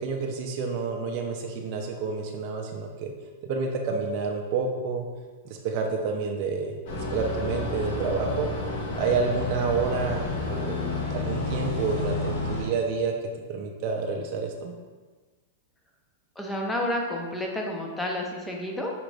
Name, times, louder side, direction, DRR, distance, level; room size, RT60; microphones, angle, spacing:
voice 1, 0.0-3.1 3.4-5.1 5.4-8.5 9.0-10.8 11.1-13.1 13.5-14.7, right 4 dB, 45° right, 1 dB, 0.5 m, -29 dB
sound 1, 6.9-12.6, left 3 dB, 55° left, 1.1 m, -30 dB
voice 2, 16.4-18.9, left 1 dB, 10° left, 0 dB, 0.6 m, -30 dB
4.9 x 2.5 x 3.3 m, 1.3 s
hypercardioid pair, 135°, 0 cm